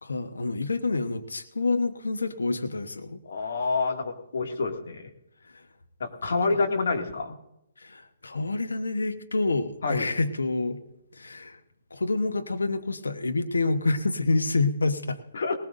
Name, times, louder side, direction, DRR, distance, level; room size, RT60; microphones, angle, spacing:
voice 1, 0.0-3.5 5.5-5.6 6.5-6.6 7.8-10.8 11.1-11.6 11.9-15.2, left 3 dB, 85° left, 8 dB, 1.0 m, -28 dB
voice 2, 3.2-5.0 6.0-7.3 9.8-10.1 15.3-15.5, left 4 dB, 70° left, 3 dB, 2.1 m, -27 dB
19.0 x 19.0 x 2.6 m, 0.84 s
hypercardioid pair, 140°, 0 cm